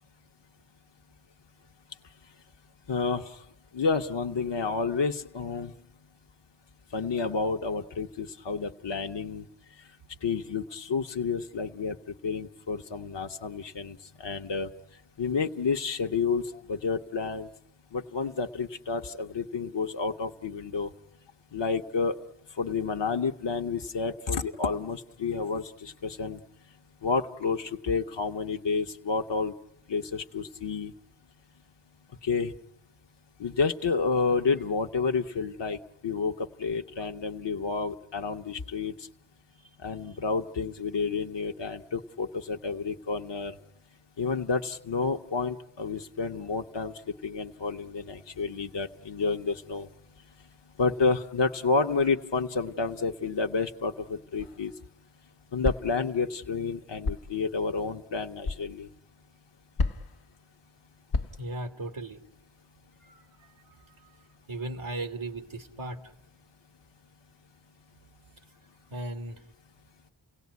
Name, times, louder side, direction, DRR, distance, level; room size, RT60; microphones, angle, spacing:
voice 1, 2.9-3.2 3.7-5.7 6.9-9.4 10.2-12.0 12.2-14.7 15.2-17.5 17.9-20.9 21.5-22.2 22.6-26.4 27.0-29.5 29.9-30.9 32.2-32.5 33.4-35.8 36.0-38.9 39.8-43.5 44.2-49.9 50.8-54.7 55.5-58.9, left 4 dB, 60° left, 5 dB, 1.0 m, -30 dB
sound 1, 54.4-54.7 55.6-56.0 57.0-57.4 58.4-58.7 59.8-60.2 61.1-61.5, left 3 dB, 90° left, 1.0 m, -31 dB
voice 2, 61.4-62.2 63.0-63.3 64.5-66.1 68.9-69.4, right 2 dB, 80° right, 6 dB, 1.9 m, -36 dB
29.5 x 17.5 x 9.5 m, 0.87 s
wide cardioid pair, 45°, 48 cm